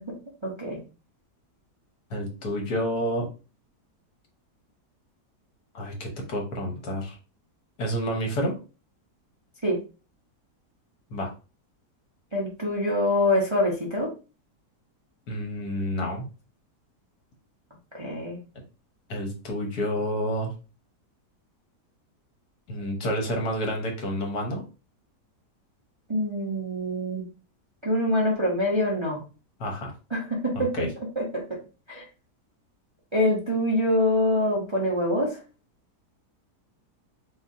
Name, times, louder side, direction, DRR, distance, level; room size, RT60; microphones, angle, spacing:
voice 1, 0.4-0.8 9.6-9.8 12.3-14.1 17.9-18.4 26.1-27.2 27.8-29.2 30.1-30.9 31.2-31.6 31.9-32.0 33.1-35.4, left 1 dB, 25° right, -3 dB, 0.7 m, -25 dB
voice 2, 2.1-3.3 5.7-7.2 7.8-8.6 11.1-11.3 15.3-16.2 19.1-20.5 22.7-24.6 29.6-29.9 30.5-30.9, equal, 70° left, 2 dB, 1.7 m, -29 dB
4.2 x 3.9 x 2.7 m, 0.32 s
omnidirectional pair, 1.8 m